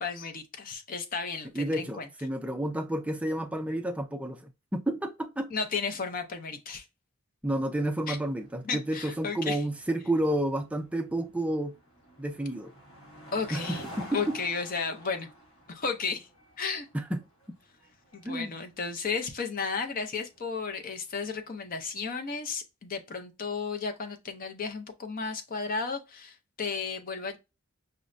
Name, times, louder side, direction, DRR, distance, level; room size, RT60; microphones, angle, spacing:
voice 1, 0.0-2.1 5.5-6.9 8.1-8.2 8.6-9.6 13.3-13.8 14.1-15.3 15.7-16.3 16.6-16.9 18.1-27.4, left 5 dB, 40° left, 0.6 m, -33 dB
voice 2, 1.5-5.5 7.4-11.7 12.2-12.7 13.5-14.4 16.9-17.2 18.2-18.6, right 1 dB, 5° right, 0.3 m, -30 dB
sound 1, 8.0-21.5, equal, 65° left, 1.5 m, -50 dB
5.3 x 2.1 x 2.5 m
head